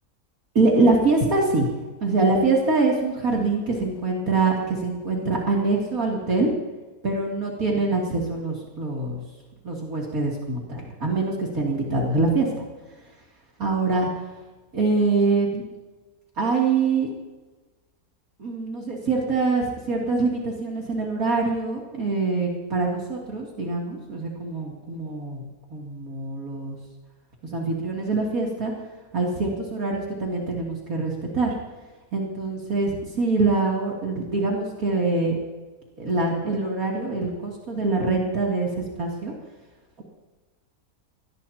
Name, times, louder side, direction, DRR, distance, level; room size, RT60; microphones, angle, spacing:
voice 1, 0.5-1.7 2.0-6.5 7.0-9.2 9.6-12.5 13.6-14.1 14.7-15.6 16.4-17.1 18.4-25.4 25.7-26.8 27.5-28.7 29.1-31.5 32.1-35.3 36.0-39.3, right 3 dB, 70° right, -3 dB, 3.4 m, -24 dB
23.0 x 19.5 x 2.9 m, 1.2 s
omnidirectional pair, 1.6 m